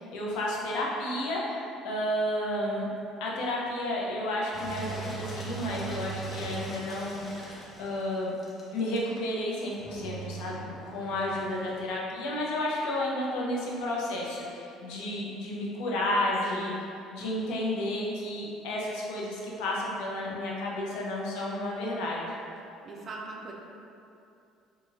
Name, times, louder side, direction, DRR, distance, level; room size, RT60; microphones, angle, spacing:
voice 1, 0.0-2.9 3.2-8.3 8.7-16.7 17.1-22.3, left 1 dB, 80° left, -4 dB, 0.6 m, -32 dB
Engine, 4.5-11.9, right 4 dB, 20° left, 0.5 m, -40 dB
voice 2, 16.4-16.7 22.8-23.5, right 3 dB, 35° right, -2 dB, 0.4 m, -41 dB
2.9 x 2.3 x 2.8 m, 2.6 s
cardioid pair, 140°, 0 cm